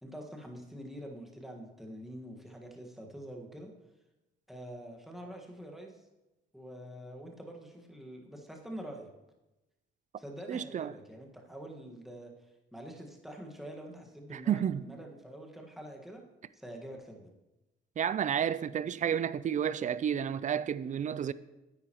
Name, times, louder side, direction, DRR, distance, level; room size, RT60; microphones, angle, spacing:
voice 1, 0.0-3.7 4.5-6.0 6.5-9.1 10.2-12.3 12.7-16.2 16.5-17.3 19.0-19.1, equal, ahead, 1.6 m, -46 dB
voice 2, 10.5-10.9 14.3-14.8 18.0-21.3, right 8 dB, 40° right, 0.4 m, -31 dB
9.8 x 9.0 x 3.0 m
cardioid pair, 90°, 20 cm